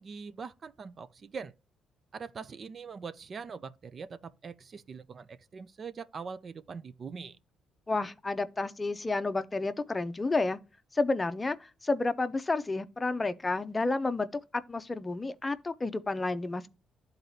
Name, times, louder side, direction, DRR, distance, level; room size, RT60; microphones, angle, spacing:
voice 1, 0.0-1.5 2.1-7.4, right 5 dB, 45° right, 0.5 m, -42 dB
voice 2, 7.9-10.6 10.9-16.7, left 3 dB, 20° left, 0.6 m, -31 dB
11.5 x 4.0 x 2.7 m
cardioid pair, 90°, 0 cm